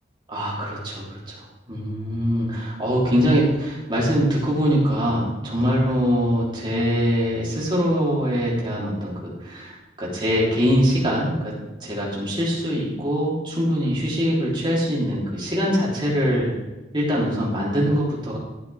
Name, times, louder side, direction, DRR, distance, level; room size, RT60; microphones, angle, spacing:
voice 1, 0.3-11.5 11.8-16.5 16.9-18.4, equal, 25° right, -6 dB, 3.5 m, -23 dB
14.0 x 8.4 x 3.5 m, 1.1 s
head